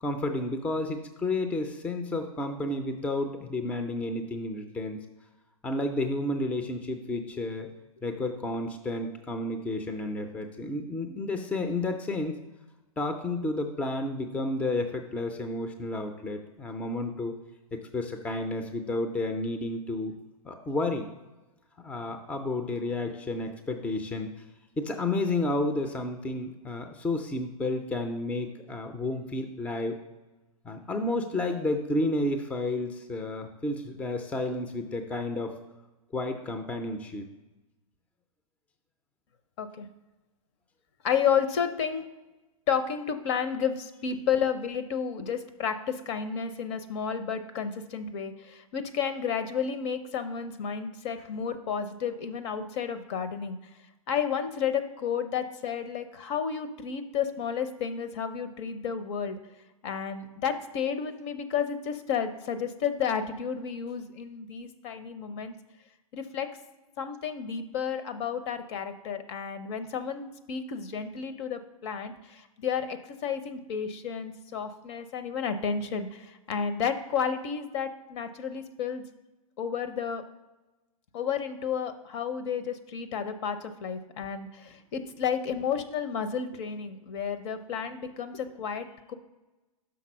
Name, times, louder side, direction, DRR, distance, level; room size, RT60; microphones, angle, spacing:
voice 1, 0.0-5.0 5.6-7.7 8.0-12.4 13.0-17.4 17.7-20.1 20.4-21.1 21.8-24.3 24.8-30.0 30.6-35.5 36.1-37.2, left 2 dB, 5° left, 6 dB, 0.4 m, -31 dB
voice 2, 41.0-42.0 42.7-53.6 54.1-59.4 59.8-65.5 66.1-66.5 67.0-79.0 79.6-80.2 81.1-89.1, left 7 dB, 50° left, 10 dB, 0.7 m, -31 dB
6.0 x 3.9 x 6.2 m, 1.1 s
hypercardioid pair, 130°, 19 cm